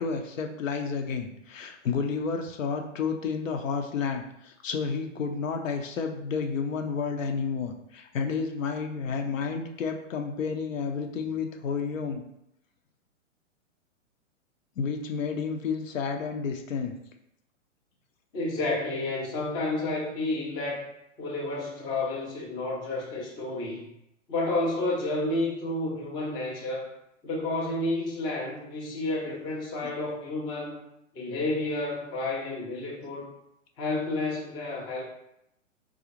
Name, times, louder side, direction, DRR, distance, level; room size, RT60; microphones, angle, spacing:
voice 1, 0.0-12.2 14.8-17.0, left 5 dB, 75° left, 4 dB, 0.7 m, -31 dB
voice 2, 18.3-20.9 21.2-23.9 24.3-26.9 27.2-30.8 31.1-33.3 33.8-35.0, left 2 dB, 10° left, -4 dB, 0.4 m, -30 dB
3.8 x 2.4 x 2.9 m, 0.81 s
hypercardioid pair, 125°, 39 cm